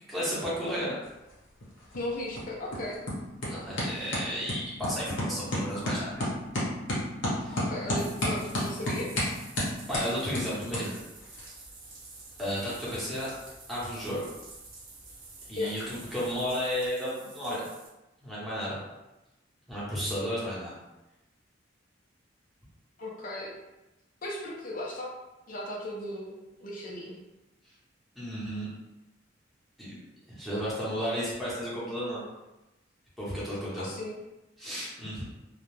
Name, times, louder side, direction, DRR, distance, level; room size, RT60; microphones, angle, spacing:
voice 1, 0.1-1.0 3.4-6.3 7.4-7.7 9.9-10.9 12.4-13.3 13.7-14.3 15.5-17.7 18.2-18.8 19.7-20.7 28.2-28.7 29.8-29.9 30.3-32.2 33.2-33.9 34.6-35.2, equal, ahead, -9 dB, 0.9 m, -33 dB
sound 1, 1.0-16.9, left 1 dB, 70° left, 0.9 m, -35 dB
voice 2, 1.9-3.0 7.6-9.1 15.6-15.8 23.0-23.5 24.2-25.1 25.5-27.2 33.8-34.1, left 1 dB, 45° left, -3 dB, 0.5 m, -36 dB
Bathtub (filling or washing), 7.8-17.9, right 3 dB, 50° right, 0.6 m, -49 dB
2.3 x 2.1 x 3.1 m, 1.0 s
head